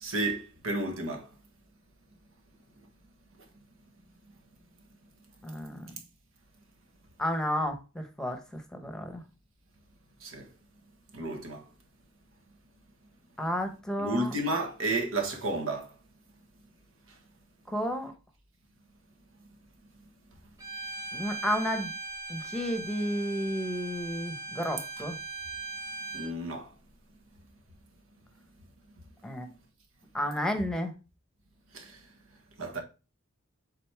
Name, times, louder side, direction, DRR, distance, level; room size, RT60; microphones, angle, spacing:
voice 1, 0.0-1.3 10.2-10.5 11.1-11.6 14.0-15.9 26.1-26.7 31.7-32.0 32.6-32.8, right 2 dB, 80° right, 1.6 m, -32 dB
voice 2, 5.4-6.0 7.2-9.2 13.4-14.3 17.7-18.1 21.1-21.9 22.3-25.2 29.2-29.5 30.1-30.9, equal, 5° left, 1.0 m, -32 dB
Bowed string instrument, 20.6-26.3, right 3 dB, 15° right, 1.5 m, -39 dB
7.6 x 4.2 x 3.4 m
head